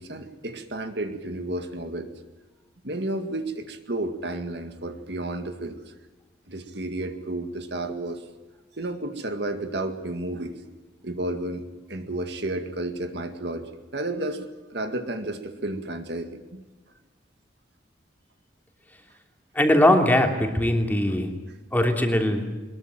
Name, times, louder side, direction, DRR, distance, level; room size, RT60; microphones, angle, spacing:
voice 1, 0.0-2.1 2.8-5.9 6.5-8.2 8.8-10.6 11.0-16.6, right 1 dB, 60° right, 7 dB, 2.1 m, -32 dB
voice 2, 19.5-21.3 21.7-22.5, left 1 dB, 10° left, 3 dB, 3.1 m, -20 dB
22.5 x 21.5 x 9.1 m, 1.2 s
head